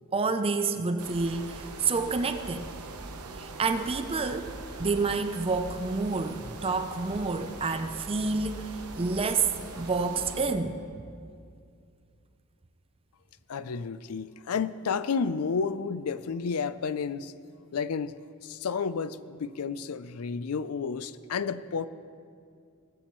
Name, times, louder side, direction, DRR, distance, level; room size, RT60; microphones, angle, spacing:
voice 1, 0.1-2.7 3.4-9.5 9.7-10.8, right 4 dB, 25° right, 9 dB, 0.5 m, -29 dB
sound 1, 1.0-10.4, right 3 dB, 80° right, 1.0 m, -42 dB
voice 2, 13.5-17.3 17.7-18.2 18.4-21.9, left 5 dB, 75° left, 15 dB, 0.4 m, -31 dB
19.0 x 14.0 x 3.1 m, 2.4 s
head